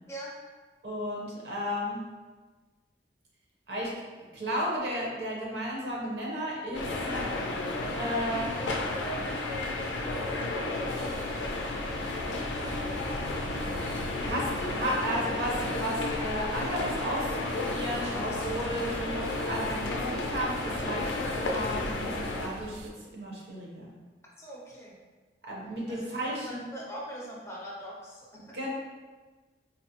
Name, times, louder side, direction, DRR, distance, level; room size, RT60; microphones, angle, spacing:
voice 1, 0.8-2.0 3.7-3.9 4.3-6.9 7.1-7.2 7.9-8.6 14.2-23.9 25.5-26.6 28.4-28.7, equal, 65° right, -3 dB, 0.8 m, -33 dB
sound 1, 6.7-22.5, left 2 dB, 85° left, 0.4 m, -32 dB
sound 2, 10.9-22.9, right 2 dB, 90° right, 0.3 m, -43 dB
voice 2, 24.4-25.0 25.9-28.6, equal, 15° left, -4 dB, 0.5 m, -42 dB
3.8 x 2.1 x 2.8 m, 1.3 s
head